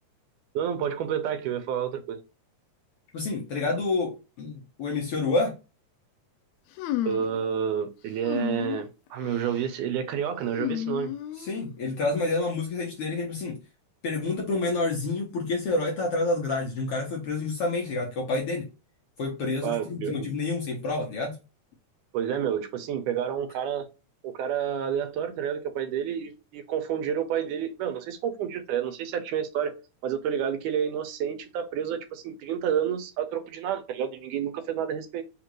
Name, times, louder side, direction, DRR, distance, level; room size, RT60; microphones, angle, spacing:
voice 1, 0.6-2.2 7.1-11.1 19.6-20.3 22.1-23.9 24.2-29.8 30.0-35.2, right 8 dB, 80° right, 2.2 m, -29 dB
voice 2, 3.1-5.6 11.4-13.6 14.0-18.7 19.2-21.4, left 3 dB, 65° left, 1.5 m, -28 dB
sound 1, 6.8-7.4 8.2-8.9 9.3-9.7 10.5-11.7, left 13 dB, 90° left, 1.5 m, -32 dB
5.1 x 2.5 x 3.0 m
omnidirectional pair, 3.6 m